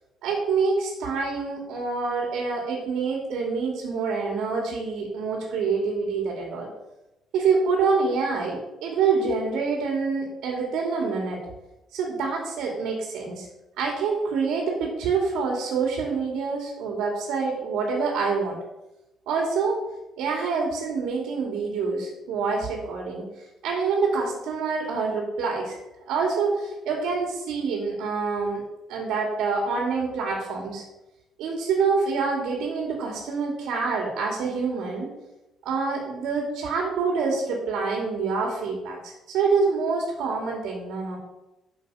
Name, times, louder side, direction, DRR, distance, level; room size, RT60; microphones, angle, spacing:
voice 1, 0.2-6.7 7.3-11.4 11.9-13.5 13.8-18.6 19.3-19.8 20.2-25.8 26.0-28.6 28.9-30.8 31.4-35.1 35.6-41.2, right 4 dB, 90° right, 0 dB, 2.6 m, -26 dB
11.0 x 7.1 x 5.0 m, 0.95 s
cardioid pair, 160°, 0 cm